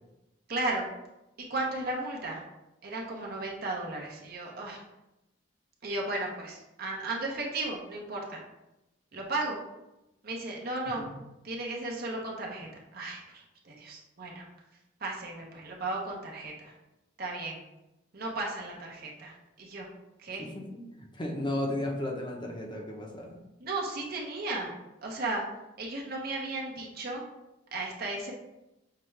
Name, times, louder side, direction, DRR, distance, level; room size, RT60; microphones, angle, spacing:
voice 1, 0.5-0.9 1.5-2.4 2.8-4.8 5.8-8.4 9.1-9.6 10.2-11.0 11.4-14.4 15.0-16.7 17.2-17.6 18.1-19.9 20.2-20.5 23.6-24.7 25.0-25.4 25.8-27.2 27.7-28.3, right 2 dB, 55° right, -1 dB, 0.8 m, -35 dB
voice 2, 20.4-23.4, left 1 dB, 25° left, 0 dB, 0.7 m, -34 dB
5.7 x 2.4 x 3.2 m, 0.93 s
head